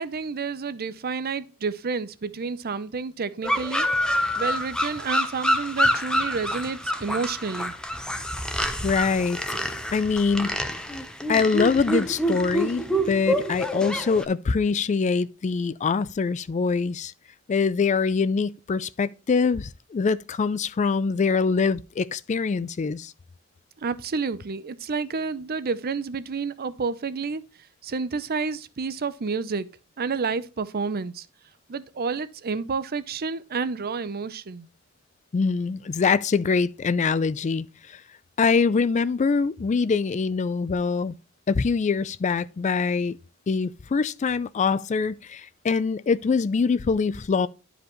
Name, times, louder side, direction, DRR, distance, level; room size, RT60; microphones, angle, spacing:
voice 1, 0.0-3.9 4.4-7.8 23.8-27.4 27.8-29.7 30.0-31.3 31.7-34.7, right 5 dB, 45° right, 0.6 m, -30 dB
sound 1, 3.4-14.2, equal, 5° left, 0.8 m, -27 dB
voice 2, 8.8-9.6 9.9-10.6 11.3-17.1 17.5-23.1 35.3-38.0 38.4-41.1 41.5-43.2 43.5-47.5, left 5 dB, 35° left, 0.4 m, -24 dB
11.5 x 5.1 x 3.0 m
head